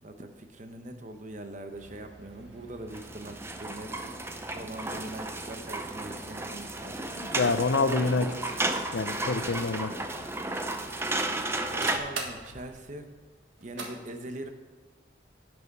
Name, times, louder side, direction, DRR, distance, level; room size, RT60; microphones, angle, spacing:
voice 1, 0.0-4.1 4.5-7.0 11.7-13.1 13.6-14.5, right 1 dB, 40° right, 6 dB, 0.8 m, -42 dB
sound 1, 1.7-13.9, right 3 dB, 85° right, 1.5 m, -46 dB
sound 2, 2.9-12.0, right 2 dB, 15° right, 0.6 m, -33 dB
voice 2, 7.2-8.6 8.9-9.9, left 3 dB, 70° left, 10 dB, 0.6 m, -27 dB
11.0 x 6.3 x 4.7 m, 1.5 s
head